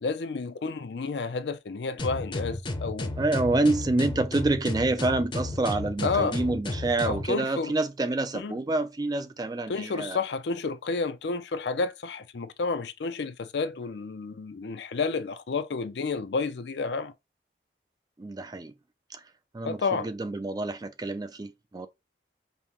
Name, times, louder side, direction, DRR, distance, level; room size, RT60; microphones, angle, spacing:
voice 1, 0.0-3.1 6.0-6.4 7.1-7.7 8.3-8.5 9.7-17.1 19.6-20.1, left 4 dB, 70° left, 0.5 m, -30 dB
sound 1, 2.0-7.3, left 2 dB, 30° left, 0.6 m, -32 dB
voice 2, 3.2-10.2 18.2-18.7 19.1-21.9, right 2 dB, 20° right, 0.4 m, -28 dB
5.3 x 2.2 x 2.9 m
head